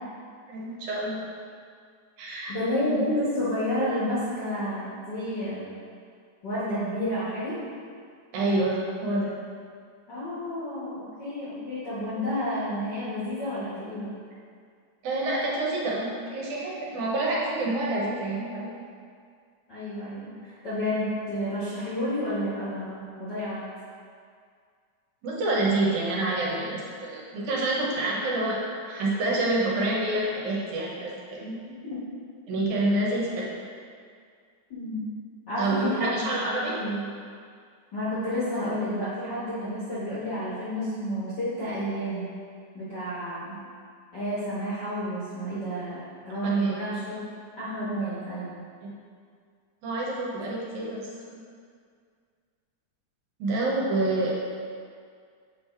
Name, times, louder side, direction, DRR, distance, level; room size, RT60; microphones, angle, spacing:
voice 1, 0.5-1.2 2.2-2.5 8.3-9.5 15.0-18.7 25.2-31.6 32.5-33.5 35.6-36.8 46.4-46.7 48.8-48.9 49.8-51.0 53.4-54.4, right 2 dB, 75° right, -4 dB, 2.3 m, -27 dB
voice 2, 2.5-5.6 6.4-7.6 10.1-14.1 19.7-23.6 31.8-32.0 34.7-35.0 35.5-36.2 36.5-37.0 37.9-42.2 42.7-43.5 44.1-47.2 47.6-48.6, equal, 55° left, -11 dB, 1.3 m, -30 dB
6.9 x 3.2 x 4.5 m, 2.2 s
omnidirectional pair, 3.6 m